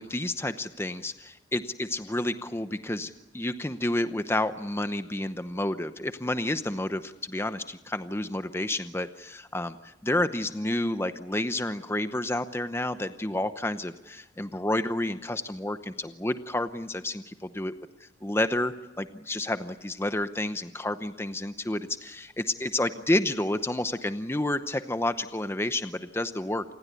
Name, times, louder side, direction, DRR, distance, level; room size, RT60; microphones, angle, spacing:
voice 1, 0.0-17.7 18.2-26.6, left 1 dB, 15° left, 10 dB, 0.8 m, -30 dB
28.0 x 19.5 x 8.3 m, 0.98 s
head